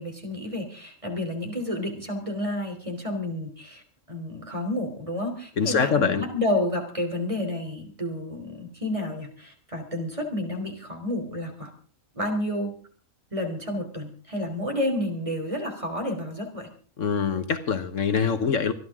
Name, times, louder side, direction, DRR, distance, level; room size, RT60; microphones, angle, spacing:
voice 1, 0.0-3.8 4.1-11.7 12.1-12.7 13.3-16.7, left 1 dB, 25° right, 3 dB, 3.5 m, -30 dB
voice 2, 5.6-6.3 17.0-18.7, left 6 dB, 70° left, 10 dB, 1.5 m, -24 dB
25.5 x 11.0 x 3.7 m, 0.42 s
omnidirectional pair, 1.3 m